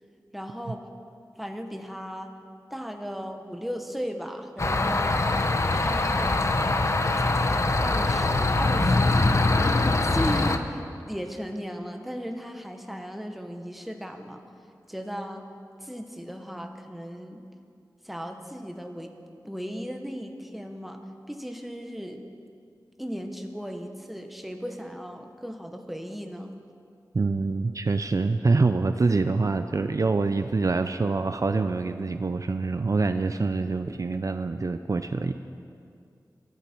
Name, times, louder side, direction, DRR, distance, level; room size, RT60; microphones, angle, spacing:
voice 1, 0.3-0.9 1.4-2.3 2.7-5.2 5.7-9.4 10.0-10.8 11.1-14.4 14.9-15.4 15.8-17.4 18.0-19.2 19.4-21.0 21.3-22.2 23.0-26.5, equal, ahead, 4 dB, 1.3 m, -36 dB
sound 1, 4.6-10.6, left 2 dB, 45° left, 0.9 m, -23 dB
voice 2, 27.1-35.3, right 3 dB, 50° right, 9 dB, 0.5 m, -25 dB
21.5 x 13.5 x 4.5 m, 2.4 s
wide cardioid pair, 80°, 7 cm